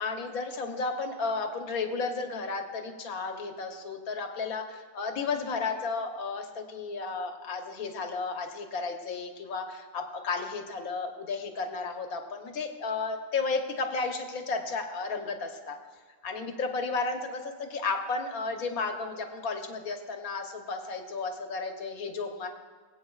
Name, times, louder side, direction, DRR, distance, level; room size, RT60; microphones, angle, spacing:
voice 1, 0.0-15.8 16.2-22.5, left 4 dB, 65° left, 5 dB, 1.4 m, -33 dB
21.5 x 8.6 x 2.4 m, 1.5 s
omnidirectional pair, 1.7 m